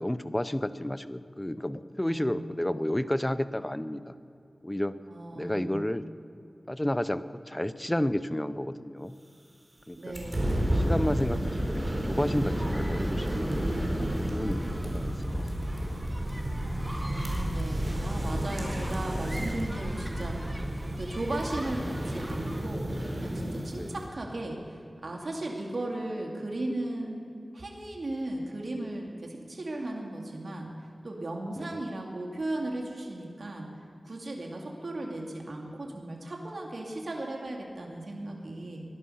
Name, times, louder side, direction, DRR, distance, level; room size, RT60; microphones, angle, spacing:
voice 1, 0.0-4.1 4.6-5.0 5.3-6.1 6.7-9.2 9.9-10.1 10.7-15.1 23.7-23.9 31.6-31.8, left 1 dB, 15° left, 14 dB, 0.7 m, -31 dB
voice 2, 2.0-2.6 5.1-5.8 9.9-10.7 17.0-20.7 21.0-27.3 27.5-33.7 34.0-38.8, right 1 dB, 65° right, 0 dB, 2.4 m, -36 dB
sound 1, 10.1-24.1, right 1 dB, 35° right, 4.1 m, -31 dB
sound 2, 12.2-22.7, equal, 15° right, 2.1 m, -46 dB
19.0 x 11.5 x 5.6 m, 2.7 s
cardioid pair, 40°, 0 cm